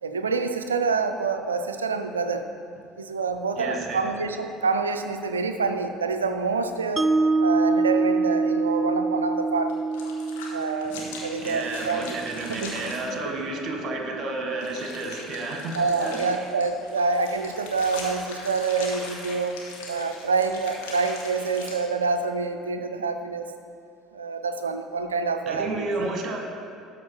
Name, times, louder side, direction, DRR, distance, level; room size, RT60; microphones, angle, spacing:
voice 1, 0.0-2.4 3.0-7.1 7.4-9.8 10.5-12.1 12.5-12.8 15.7-19.6 19.9-23.5 24.1-25.9, right 4 dB, 80° right, 7 dB, 0.4 m, -27 dB
voice 2, 3.6-4.0 10.9-11.1 11.4-16.2 25.5-26.4, right 2 dB, 45° right, 2 dB, 1.3 m, -31 dB
Mallet percussion, 7.0-13.1, right 3 dB, 10° right, 0.4 m, -26 dB
sound 1, 9.7-13.0 14.6-21.7, left 3 dB, 65° left, 1.3 m, -40 dB
12.5 x 4.4 x 4.5 m, 2.5 s
figure-of-eight pair, 60°, 0 cm